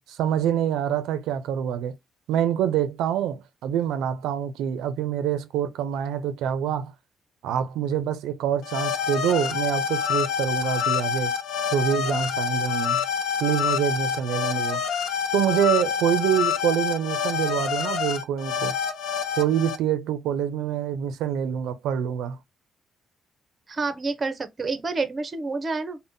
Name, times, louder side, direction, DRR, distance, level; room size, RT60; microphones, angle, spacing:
voice 1, 0.0-1.9 2.3-6.9 7.4-11.3 11.7-13.0 13.4-14.8 15.3-18.7 19.4-22.4, right 9 dB, 90° right, 0.4 m, -26 dB
sound 1, 8.6-19.8, left 7 dB, 80° left, 0.4 m, -27 dB
voice 2, 23.7-26.0, right 3 dB, 35° right, 0.6 m, -28 dB
3.5 x 2.1 x 2.5 m
cardioid pair, 90°, 0 cm